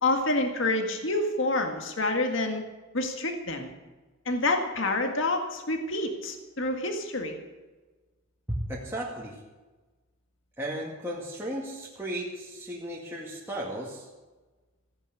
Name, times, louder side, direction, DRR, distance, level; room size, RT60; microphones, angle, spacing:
voice 1, 0.0-2.6 2.9-3.7 4.3-7.4, left 2 dB, 60° left, 4 dB, 1.8 m, -28 dB
voice 2, 8.5-9.4 10.6-14.1, right 1 dB, 10° right, -5 dB, 2.1 m, -35 dB
15.5 x 9.9 x 8.0 m, 1.2 s
head